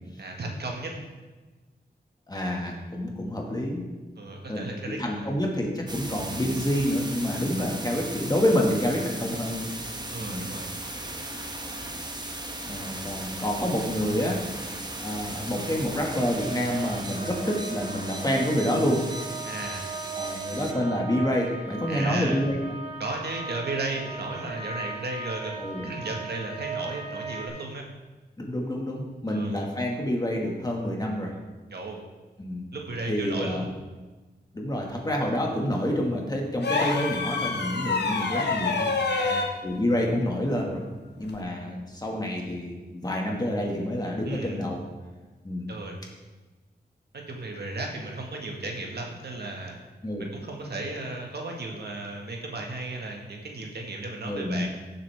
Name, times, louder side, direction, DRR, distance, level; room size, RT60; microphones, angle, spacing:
voice 1, 0.2-0.9 4.2-5.3 10.1-10.7 19.4-19.9 21.9-22.4 23.0-27.8 29.3-29.5 31.7-32.0 32.7-33.7 39.1-39.6 44.3-44.6 45.7-46.0 47.1-49.8 50.2-54.7, right 2 dB, 75° right, 1 dB, 1.8 m, -35 dB
voice 2, 2.3-3.9 4.5-9.7 10.2-10.5 12.7-14.5 15.0-19.0 20.2-22.6 25.6-25.8 28.4-31.3 32.4-32.7 33.0-33.7 34.5-38.9 39.6-40.8 41.2-44.8 45.4-45.7 50.0-50.3 54.2-54.7, left 1 dB, 25° left, -1 dB, 2.0 m, -28 dB
sound 1, 5.9-20.7, right 1 dB, 25° right, 1.1 m, -37 dB
sound 2, 16.0-27.5, right 4 dB, 40° right, 2.6 m, -38 dB
sound 3, 36.6-39.6 41.2-41.4, left 4 dB, 85° left, 1.1 m, -27 dB
16.0 x 7.5 x 3.6 m, 1.2 s
wide cardioid pair, 110°, 17 cm